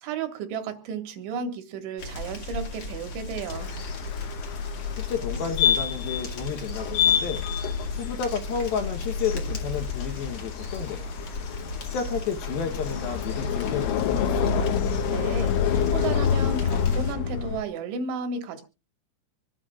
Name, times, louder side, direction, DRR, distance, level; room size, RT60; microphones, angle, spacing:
voice 1, 0.0-3.7 15.1-15.5 15.8-18.6, right 5 dB, 80° right, 7 dB, 3.8 m, -33 dB
sound 1, 2.0-17.1, left 1 dB, 45° left, 1.8 m, -37 dB
sound 2, 3.5-17.6, left 7 dB, 90° left, 3.7 m, -27 dB
voice 2, 5.1-7.5 7.9-11.1 11.9-14.7, left 7 dB, 70° left, 5 dB, 2.4 m, -31 dB
25.5 x 9.8 x 2.4 m, 0.29 s
omnidirectional pair, 5.4 m